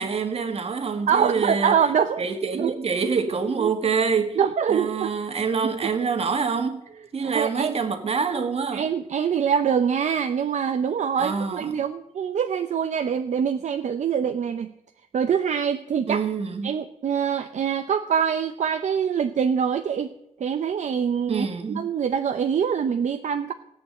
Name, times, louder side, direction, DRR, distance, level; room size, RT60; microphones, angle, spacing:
voice 1, 0.0-1.8 2.2-4.4 4.7-6.8 7.1-8.9 11.2-11.8 16.1-16.7 21.3-21.9, right 5 dB, 55° right, 1.7 m, -26 dB
voice 2, 1.1-2.2 2.5-2.8 3.6-3.7 4.4-5.1 7.2-7.8 8.7-14.7 15.1-16.2 16.6-20.1 20.4-23.5, right 7 dB, 70° right, 0.7 m, -24 dB
17.5 x 8.6 x 7.8 m
wide cardioid pair, 170°, 13 cm